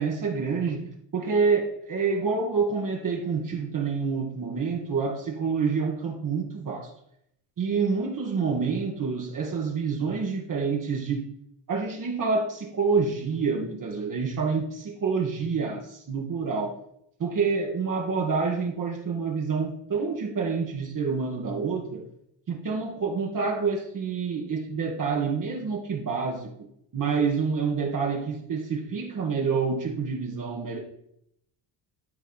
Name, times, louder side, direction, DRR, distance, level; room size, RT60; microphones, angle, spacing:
voice 1, 0.0-6.9 7.6-11.3 11.7-16.8 17.2-22.0 22.5-26.7 26.9-30.8, right 5 dB, 40° right, 0 dB, 1.5 m, -27 dB
12.0 x 4.2 x 4.1 m, 0.73 s
cardioid pair, 90°, 47 cm